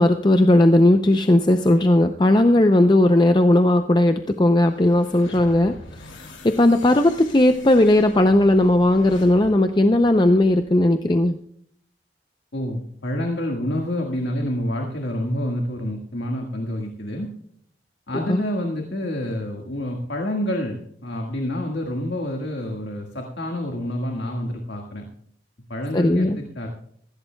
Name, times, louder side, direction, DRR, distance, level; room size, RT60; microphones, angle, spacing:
voice 1, 0.0-5.7 6.4-11.3 18.3-18.4 25.9-26.4, left 1 dB, 25° left, 7 dB, 0.5 m, -17 dB
sound 1, 4.7-10.9, left 2 dB, 90° left, 2.5 m, -44 dB
voice 2, 12.5-17.3 18.1-25.0 25.7-26.7, left 1 dB, 70° left, 2 dB, 1.7 m, -28 dB
19.5 x 15.5 x 2.3 m, 0.66 s
head